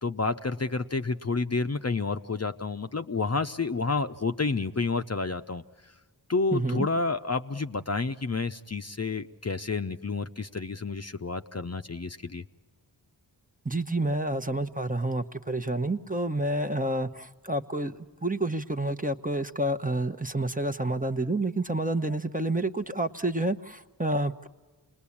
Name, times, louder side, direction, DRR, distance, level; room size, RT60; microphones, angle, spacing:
voice 1, 0.0-5.6 6.3-12.4, left 4 dB, 35° left, 8 dB, 0.7 m, -30 dB
voice 2, 6.5-6.9 13.6-24.5, right 1 dB, 20° right, 7 dB, 0.9 m, -29 dB
28.0 x 20.5 x 8.6 m, 1.3 s
wide cardioid pair, 50°, 42 cm